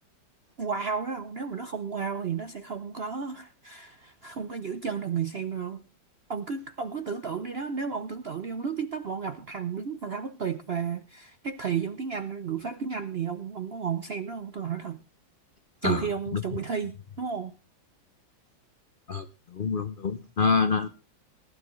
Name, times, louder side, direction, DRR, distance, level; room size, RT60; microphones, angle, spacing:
voice 1, 0.6-5.8 6.3-15.0 15.8-17.5, right 6 dB, 60° right, 0.6 m, -32 dB
voice 2, 19.5-20.9, left 5 dB, 70° left, 0.5 m, -26 dB
19.5 x 11.5 x 3.1 m
omnidirectional pair, 2.0 m